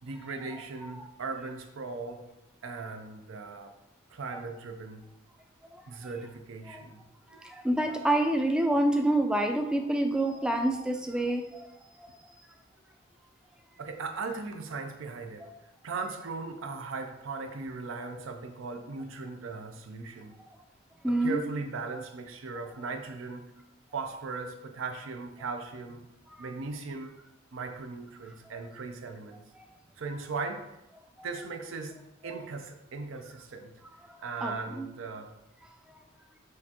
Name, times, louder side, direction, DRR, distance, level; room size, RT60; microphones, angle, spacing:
voice 1, 0.0-2.3 2.6-3.7 4.1-5.0 5.9-7.0 13.8-15.5 15.8-20.4 21.1-23.5 23.9-26.1 26.4-27.2 27.5-29.4 30.0-30.7 31.2-32.0 32.2-33.8 34.2-35.3, right 4 dB, 75° right, 5 dB, 0.5 m, -38 dB
voice 2, 7.3-11.7 12.0-12.1 15.4-15.5 21.0-21.4 26.4-26.5 34.4-34.9, right 1 dB, 5° right, 4 dB, 0.3 m, -27 dB
6.4 x 2.5 x 2.8 m, 0.90 s
head